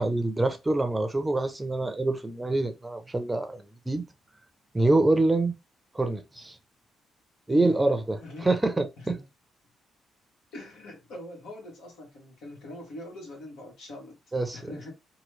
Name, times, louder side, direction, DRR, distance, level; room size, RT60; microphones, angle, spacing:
voice 1, 0.0-4.0 4.7-5.5 5.9-6.6 7.5-9.2 14.3-14.6, right 2 dB, 15° right, 0.6 m, -25 dB
voice 2, 7.5-7.8 8.2-8.5 9.0-9.2 10.5-14.2 14.5-14.9, left 1 dB, 85° left, 1.4 m, -42 dB
3.0 x 2.3 x 3.2 m
cardioid pair, 90°, 0 cm